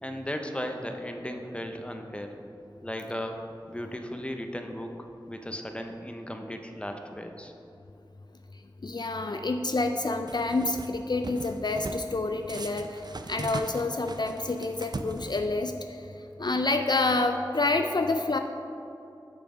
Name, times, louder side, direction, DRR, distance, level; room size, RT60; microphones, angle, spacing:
voice 1, 0.0-2.4 2.8-3.4 3.7-4.9 5.3-7.5, equal, 15° left, 4 dB, 0.7 m, -36 dB
voice 2, 8.8-13.0 13.3-16.0 16.4-18.4, left 2 dB, 55° left, 5 dB, 0.4 m, -28 dB
sound 1, 10.3-10.9 11.2-12.1 12.5-15.7, right 2 dB, 55° right, 0.4 m, -39 dB
6.8 x 6.1 x 4.9 m, 2.8 s
wide cardioid pair, 40°, 9 cm